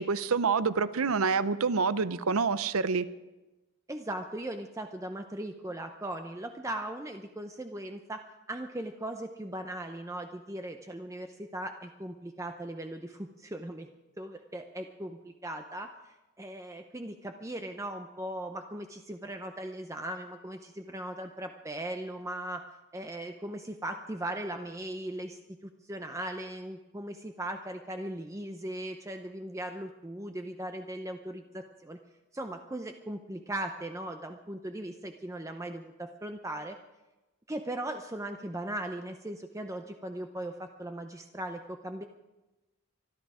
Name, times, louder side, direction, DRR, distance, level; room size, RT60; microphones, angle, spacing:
voice 1, 0.0-3.1, right 5 dB, 75° right, 15 dB, 0.7 m, -27 dB
voice 2, 3.9-8.2 8.5-13.9 14.2-22.6 22.9-32.0 32.3-36.8 37.5-42.0, right 1 dB, 15° right, 5 dB, 0.6 m, -38 dB
24.5 x 11.5 x 5.0 m, 1.1 s
head